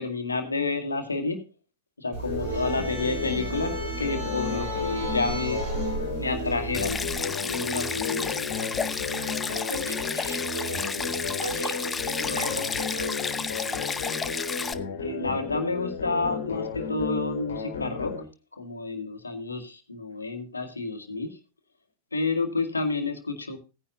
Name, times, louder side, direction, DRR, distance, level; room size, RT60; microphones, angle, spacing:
voice 1, 0.0-1.4 2.0-5.6 6.2-7.0 7.4-8.4 15.0-18.2 18.6-21.4 22.1-23.6, left 3 dB, 80° left, 6 dB, 2.1 m, -30 dB
sound 1, 2.1-7.2, right 2 dB, 55° right, 6.7 m, -33 dB
sound 2, 2.2-18.2, left 5 dB, 60° left, 2.6 m, -33 dB
voice 2, 2.5-2.8 9.1-13.4, right 1 dB, 80° right, 5 dB, 2.8 m, -38 dB
Stream, 6.7-14.7, left 5 dB, 15° left, 0.8 m, -32 dB
17.5 x 10.0 x 2.7 m, 0.30 s
figure-of-eight pair, 90°, 0 cm